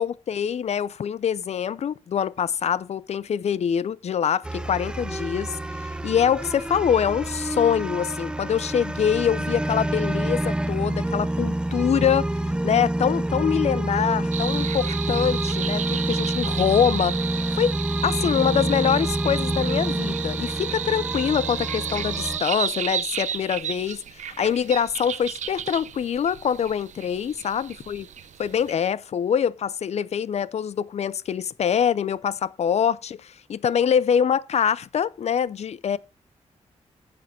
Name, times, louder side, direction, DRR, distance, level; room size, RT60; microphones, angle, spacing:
voice 1, 0.0-12.3 12.6-17.2 17.6-17.7 18.0-24.0 24.4-28.1 28.4-36.0, left 8 dB, 60° left, 0.6 m, -24 dB
sound 1, 4.4-22.4, right 1 dB, 5° right, 0.5 m, -27 dB
sound 2, 14.3-28.7, right 9 dB, 75° right, 0.7 m, -32 dB
10.5 x 7.6 x 4.2 m
cardioid pair, 100°, 12 cm